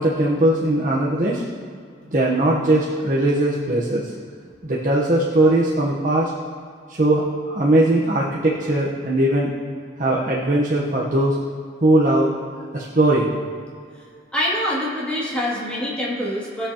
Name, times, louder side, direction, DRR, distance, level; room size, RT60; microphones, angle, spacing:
voice 1, 0.0-1.4 2.1-4.1 4.6-6.3 6.9-9.5 10.0-11.4 11.8-12.3 12.7-13.3, right 1 dB, 45° right, -4 dB, 1.0 m, -19 dB
voice 2, 14.3-16.7, equal, 5° left, -7 dB, 2.5 m, -25 dB
19.0 x 6.9 x 2.9 m, 2.2 s
head